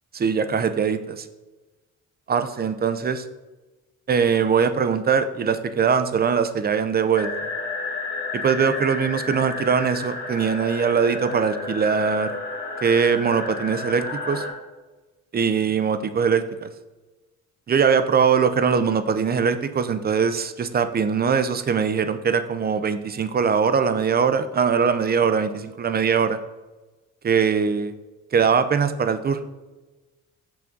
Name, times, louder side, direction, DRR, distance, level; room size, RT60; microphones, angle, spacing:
voice 1, 0.1-1.3 2.3-3.2 4.1-7.3 8.3-12.4 12.8-14.4 15.3-16.7 17.7-26.4 27.2-27.9 28.3-29.4, right 6 dB, 30° right, 11 dB, 0.5 m, -21 dB
sound 1, 7.1-14.5, left 3 dB, 30° left, 1.8 m, -31 dB
6.0 x 5.9 x 3.8 m, 1.2 s
cardioid pair, 90°, 30 cm